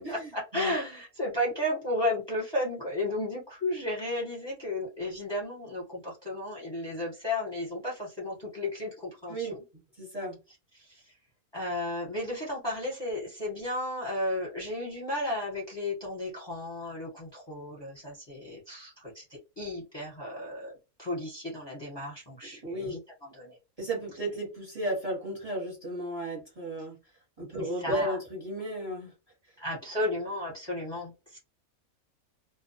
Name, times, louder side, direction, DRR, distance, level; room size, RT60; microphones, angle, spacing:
voice 1, 0.1-9.5 10.7-11.1 11.5-23.6 27.6-28.2 29.6-31.4, left 1 dB, 25° left, -4 dB, 0.7 m, -34 dB
voice 2, 10.0-10.4 22.6-23.0 23.8-27.0 27.4-29.1, right 1 dB, 30° right, -2 dB, 0.8 m, -34 dB
2.2 x 2.1 x 2.6 m, 0.28 s
omnidirectional pair, 1.5 m